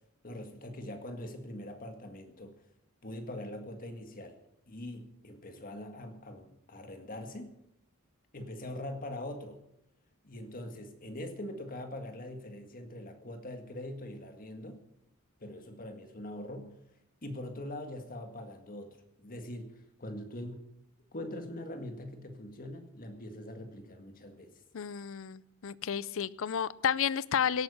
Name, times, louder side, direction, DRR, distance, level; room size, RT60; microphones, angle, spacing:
voice 1, 0.2-2.5 3.0-4.4 4.7-7.5 8.3-9.6 10.2-14.8 15.4-16.8 17.2-20.6 21.1-24.6, left 1 dB, 40° left, 6 dB, 1.9 m, -42 dB
voice 2, 24.7-27.6, left 8 dB, 65° left, 19 dB, 0.5 m, -31 dB
17.0 x 9.1 x 6.9 m, 0.77 s
head